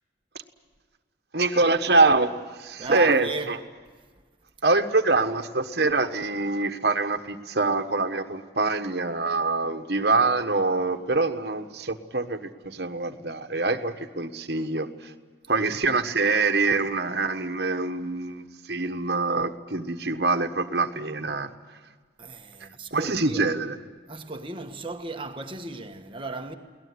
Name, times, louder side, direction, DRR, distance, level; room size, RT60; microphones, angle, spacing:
voice 1, 1.3-2.3 2.6-3.6 4.6-14.9 15.5-21.5 22.9-23.8, right 3 dB, 60° right, 1.3 m, -24 dB
voice 2, 2.8-3.5 22.2-23.4 24.1-26.5, right 3 dB, 30° right, 1.3 m, -35 dB
22.5 x 18.5 x 9.7 m
head